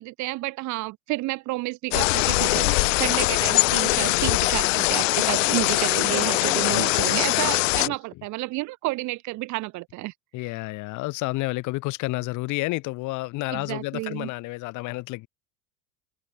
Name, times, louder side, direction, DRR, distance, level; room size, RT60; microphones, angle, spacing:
voice 1, 0.0-10.1 13.5-14.3, right 20 dB, 50° right, 3.8 m, -30 dB
sound 1, 1.9-7.9, left 25 dB, 85° left, 0.8 m, -22 dB
voice 2, 7.3-8.0 10.3-15.3, left 21 dB, 50° left, 5.4 m, -31 dB
open air
cardioid pair, 155°, 38 cm